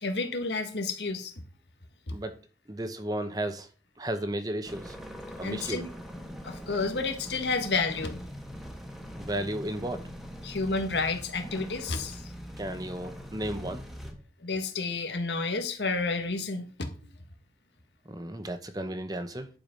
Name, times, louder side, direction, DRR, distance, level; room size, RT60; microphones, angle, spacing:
voice 1, 0.0-1.3 5.4-5.9 6.4-8.2 10.4-12.2 14.4-16.9, left 3 dB, 85° left, 1.7 m, -30 dB
voice 2, 2.7-3.7 4.0-5.0 5.4-5.9 9.2-10.0 12.6-14.0 18.1-19.5, right 1 dB, 20° right, 0.9 m, -34 dB
sound 1, 4.6-14.1, equal, ahead, 1.3 m, -42 dB
10.5 x 4.8 x 5.4 m
head